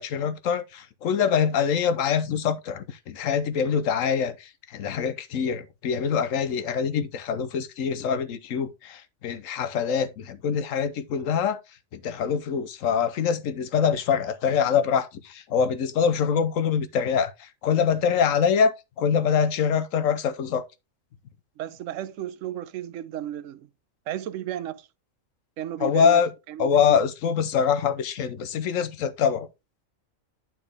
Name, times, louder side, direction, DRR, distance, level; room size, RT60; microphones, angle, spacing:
voice 1, 0.0-11.6 11.9-20.6 25.8-26.3 26.6-29.5, left 7 dB, 75° left, 1.1 m, -24 dB
voice 2, 21.6-23.7 24.1-24.9 25.6-26.2 26.5-27.0, right 11 dB, 70° right, 1.0 m, -34 dB
9.9 x 4.4 x 3.4 m
omnidirectional pair, 1.4 m